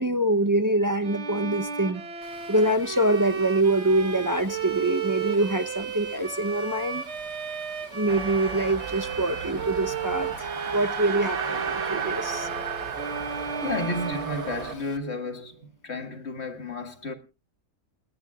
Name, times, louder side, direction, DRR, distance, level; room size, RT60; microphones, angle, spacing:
voice 1, 0.0-2.0 2.5-7.0 7.9-12.5, right 1 dB, 25° right, 0.4 m, -25 dB
Bowed string instrument, 1.0-15.1, right 6 dB, 50° right, 1.4 m, -34 dB
sound 1, 2.2-15.0, left 3 dB, 60° left, 2.3 m, -50 dB
sound 2, 8.1-14.7, right 6 dB, 65° right, 1.7 m, -33 dB
voice 2, 13.6-17.1, left 2 dB, 45° left, 2.0 m, -32 dB
29.5 x 10.5 x 2.3 m
omnidirectional pair, 1.6 m